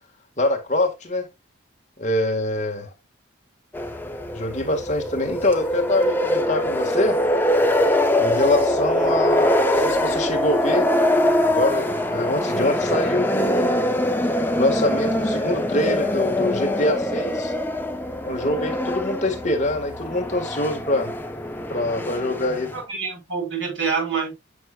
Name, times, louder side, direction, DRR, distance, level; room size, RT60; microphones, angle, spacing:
voice 1, 0.4-1.3 2.0-2.9 4.3-7.2 8.2-10.9 11.4-13.9 14.6-17.5 18.3-21.1 21.7-22.7, left 1 dB, 40° left, 1.9 m, -24 dB
sound 1, 3.7-22.8, left 1 dB, 10° left, 0.7 m, -23 dB
voice 2, 22.7-24.3, right 5 dB, 75° right, 3.7 m, -26 dB
9.4 x 6.0 x 2.5 m
head